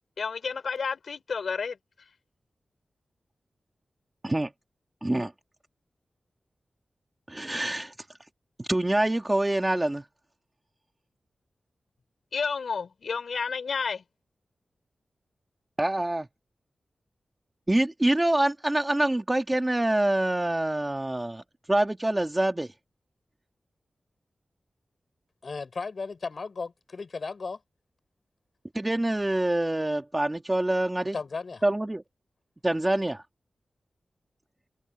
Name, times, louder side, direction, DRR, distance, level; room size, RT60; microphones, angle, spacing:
voice 1, 0.2-1.8 12.3-14.0, left 5 dB, 75° left, 4.5 m, -31 dB
voice 2, 5.0-5.3 7.3-7.9 8.6-10.0 15.8-16.3 17.7-21.4 21.7-22.7 28.7-31.2 31.6-32.0 32.6-33.2, right 1 dB, 15° right, 2.4 m, -25 dB
voice 3, 25.4-27.6 31.1-31.6, left 4 dB, 50° left, 6.3 m, -35 dB
wide cardioid pair, 135°, 0 cm